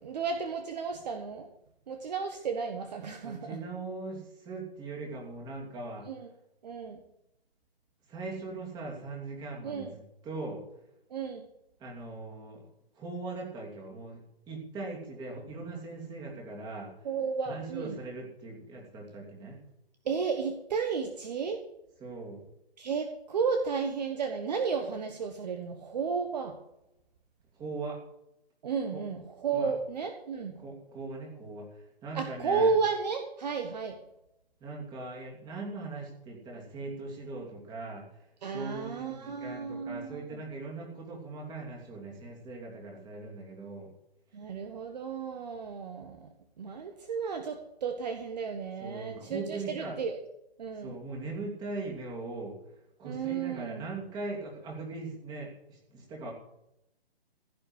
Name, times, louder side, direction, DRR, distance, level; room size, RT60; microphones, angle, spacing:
voice 1, 0.0-1.5 1.9-3.6 6.1-6.3 6.6-7.0 9.6-9.9 11.1-11.5 17.0-18.0 20.0-21.6 22.8-26.6 28.6-30.5 32.1-34.0 38.4-40.4 44.3-46.3 46.6-50.2 50.6-51.0 53.0-53.8, right 5 dB, 40° right, 6 dB, 1.4 m, -33 dB
voice 2, 3.2-6.1 8.1-10.6 11.8-12.7 12.9-17.1 17.4-19.6 22.0-22.5 27.5-28.0 28.9-29.0 29.5-29.7 30.6-32.7 34.6-43.9 48.8-50.0 50.8-52.6 53.0-56.3, right 3 dB, 15° right, 0 dB, 2.8 m, -40 dB
15.5 x 6.8 x 8.0 m, 0.84 s
figure-of-eight pair, 140°, 31 cm